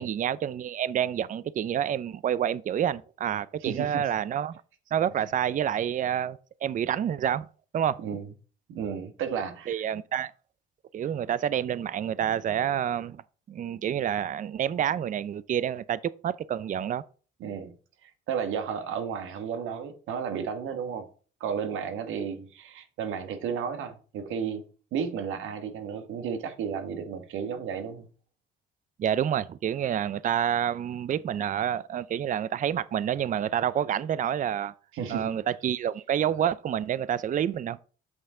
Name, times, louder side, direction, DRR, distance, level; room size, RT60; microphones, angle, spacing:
voice 1, 0.0-4.6 4.9-7.5 7.7-8.0 9.7-10.3 10.9-13.2 13.5-17.0 29.0-34.7 35.1-37.8, right 9 dB, 40° right, 0.4 m, -28 dB
voice 2, 3.6-4.1 8.0-8.3 8.7-9.8 17.4-17.8 18.0-21.1 21.4-24.6 24.9-28.1 34.9-35.3, right 7 dB, 90° right, 1.3 m, -33 dB
7.9 x 5.7 x 3.7 m
cardioid pair, 90°, 20 cm